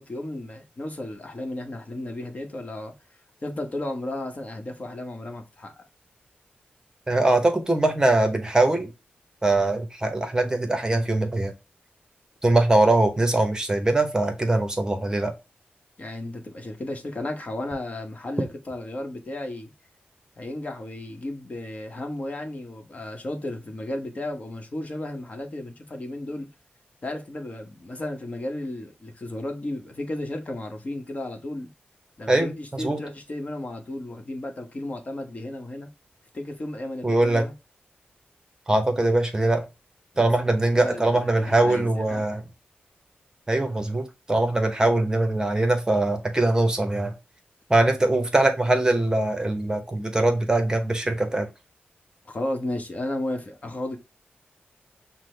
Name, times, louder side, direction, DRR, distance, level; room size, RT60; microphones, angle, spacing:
voice 1, 0.0-2.9 3.4-5.9 16.0-19.7 20.4-26.5 27.0-31.7 32.2-35.9 36.3-37.5 40.1-40.3 40.6-42.3 52.2-54.0, left 1 dB, 40° left, 1.0 m, -34 dB
voice 2, 7.1-8.9 9.4-11.5 12.4-15.3 32.3-33.0 37.0-37.4 38.7-39.6 40.2-42.4 43.5-47.1 47.7-51.5, right 2 dB, 20° right, 0.8 m, -22 dB
6.0 x 2.1 x 3.2 m
wide cardioid pair, 90°, 4 cm